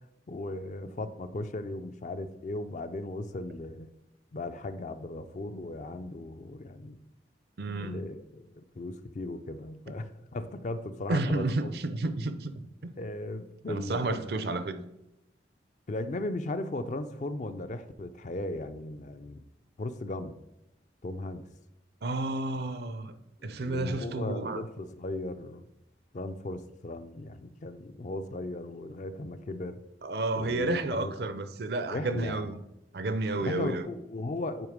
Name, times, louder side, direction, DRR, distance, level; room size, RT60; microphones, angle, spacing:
voice 1, 0.3-3.9 4.3-7.0 7.8-11.7 13.0-14.2 15.9-19.4 19.8-20.4 21.0-21.4 23.4-25.7 26.1-29.8 30.4-31.1 31.9-32.5 33.4-34.7, left 2 dB, 40° left, 0.4 m, -37 dB
voice 2, 7.6-8.0 11.1-12.5 12.8-12.9 13.7-14.8 22.0-23.1 23.4-24.6 30.0-32.6 32.9-33.9, right 2 dB, 60° right, 0.5 m, -31 dB
9.0 x 3.5 x 5.0 m
head